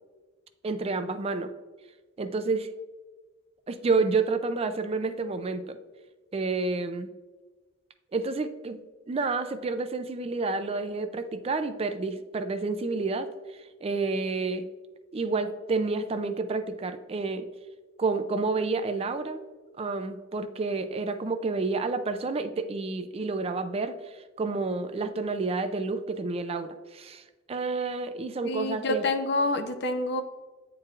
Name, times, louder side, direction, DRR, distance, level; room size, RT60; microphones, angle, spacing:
voice 1, 0.6-1.5 2.2-2.7 3.7-5.8 6.3-7.1 8.1-8.8 9.1-13.3 13.8-14.7 15.1-17.5 18.0-19.4 19.8-29.0, right 3 dB, 30° right, 9 dB, 0.4 m, -29 dB
voice 2, 28.4-30.2, left 2 dB, 60° left, 7 dB, 0.6 m, -27 dB
8.8 x 4.6 x 2.4 m, 1.3 s
head